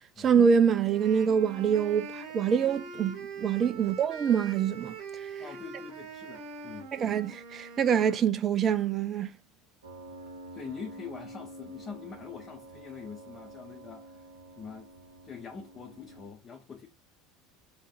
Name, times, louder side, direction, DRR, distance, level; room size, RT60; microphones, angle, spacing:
voice 1, 0.2-4.9 6.9-9.3, right 7 dB, 35° right, 0.5 m, -25 dB
sound 1, 0.8-8.3, right 5 dB, 50° right, 0.9 m, -43 dB
voice 2, 5.4-6.9 10.5-14.2 14.6-14.9 15.2-16.9, left 6 dB, 30° left, 0.8 m, -44 dB
Piano, 9.8-16.3, right 1 dB, 80° right, 0.6 m, -48 dB
3.5 x 2.5 x 4.1 m
figure-of-eight pair, 75°, 0 cm